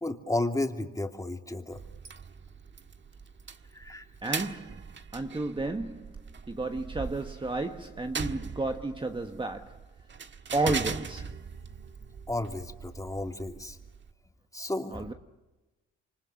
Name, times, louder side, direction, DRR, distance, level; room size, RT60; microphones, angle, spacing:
voice 1, 0.0-1.8 3.7-4.1 12.3-13.8 14.5-15.1, left 2 dB, 10° left, 3.0 m, -33 dB
sound 1, 1.7-14.1, right 5 dB, 40° right, 1.7 m, -40 dB
voice 2, 4.2-6.2 6.5-9.8 10.5-11.3 14.9-15.1, right 2 dB, 15° right, 1.4 m, -32 dB
28.0 x 25.0 x 6.4 m
cardioid pair, 90°, 30 cm